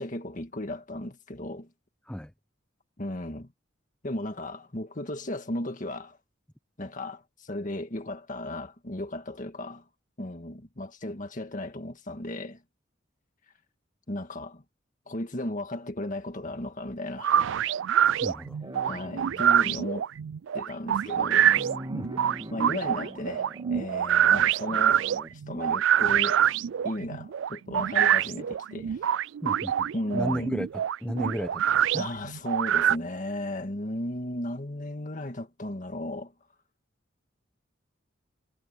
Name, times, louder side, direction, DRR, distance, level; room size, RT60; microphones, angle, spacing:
voice 1, 0.0-1.7 3.0-3.5 4.0-6.2 6.8-9.8 10.2-12.6 14.1-14.6 15.1-17.5 18.8-20.1 20.5-21.6 22.5-25.1 25.3-26.4 26.8-29.1 29.9-30.6 32.0-36.3, left 1 dB, 40° left, 1.8 m, -35 dB
sound 1, 17.2-33.0, right 9 dB, 75° right, 0.3 m, -25 dB
voice 2, 18.2-18.6 21.9-22.1 29.4-32.1, equal, 5° left, 1.0 m, -33 dB
sound 2, 18.6-19.7 20.9-25.3, right 1 dB, 25° right, 2.1 m, -43 dB
head